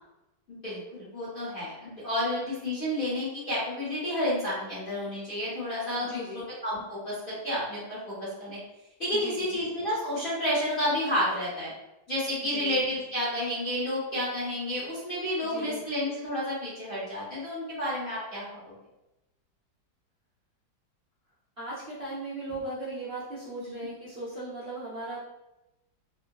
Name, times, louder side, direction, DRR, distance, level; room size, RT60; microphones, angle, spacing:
voice 1, 0.5-6.2 6.6-8.1 8.4-8.6 9.0-11.7 12.1-18.7 23.6-23.9, left 1 dB, 40° left, -10 dB, 0.9 m, -30 dB
voice 2, 6.0-6.4 9.1-9.6 12.4-12.8 15.4-15.8 21.6-25.2, right 2 dB, 45° right, -10 dB, 0.9 m, -38 dB
3.6 x 2.1 x 2.2 m, 0.92 s
omnidirectional pair, 1.9 m